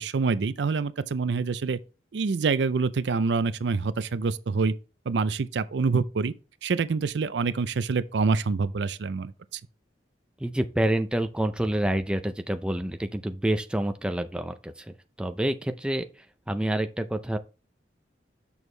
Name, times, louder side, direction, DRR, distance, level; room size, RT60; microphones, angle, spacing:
voice 1, 0.0-1.8 2.1-4.7 5.1-6.3 6.6-9.6, right 4 dB, 75° right, 0.5 m, -26 dB
voice 2, 10.4-16.1 16.5-17.4, right 1 dB, 5° right, 0.4 m, -28 dB
7.1 x 6.3 x 3.3 m
head